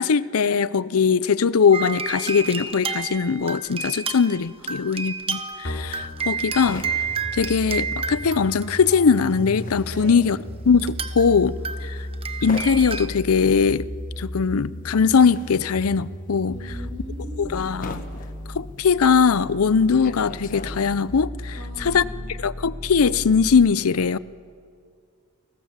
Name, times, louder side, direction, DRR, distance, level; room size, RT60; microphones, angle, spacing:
voice 1, 0.0-6.8 7.3-10.4 10.7-11.6 11.8-12.0 12.4-13.9 14.2-16.5 17.4-18.0 18.5-21.5 21.8-22.0 22.4-24.2, left 5 dB, 85° left, 0.6 m, -20 dB
sound 1, 1.7-9.5 10.8-11.3 11.6-13.1, right 5 dB, 25° right, 1.0 m, -31 dB
sound 2, 5.6-23.6, equal, 60° left, 3.6 m, -35 dB
sound 3, 5.8-8.4 8.6-21.3, left 2 dB, 40° left, 1.4 m, -41 dB
voice 2, 9.8-10.3 11.6-11.8 16.5-17.7 21.5-22.2, equal, 70° right, 4.6 m, -40 dB
29.5 x 18.5 x 7.4 m
head